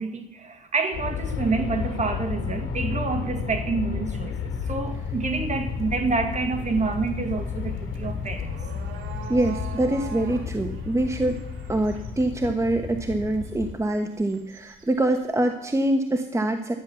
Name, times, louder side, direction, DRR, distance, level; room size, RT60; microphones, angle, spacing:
voice 1, 0.0-8.5, right 4 dB, 35° right, 2.1 m, -28 dB
Aircraft, 0.9-13.7, left 6 dB, 80° left, 2.3 m, -32 dB
sound 1, 4.9-15.4, right 7 dB, 90° right, 1.9 m, -46 dB
voice 2, 9.3-11.4 11.7-16.8, right 1 dB, 15° right, 1.2 m, -25 dB
13.0 x 9.8 x 7.1 m
cardioid pair, 90°, 20 cm